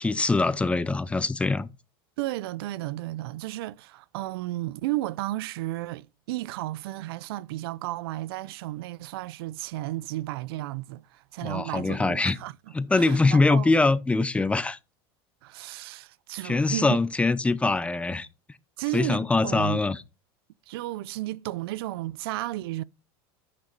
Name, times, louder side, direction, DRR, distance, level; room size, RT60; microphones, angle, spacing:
voice 1, 0.0-1.7 11.4-12.4 12.7-14.8 16.4-18.3 18.9-20.0, left 3 dB, 10° left, 0.6 m, -23 dB
voice 2, 2.2-13.7 15.4-17.0 18.8-19.8 20.7-22.8, right 17 dB, 85° right, 0.5 m, -33 dB
8.7 x 6.6 x 4.0 m
supercardioid pair, 130°, 12 cm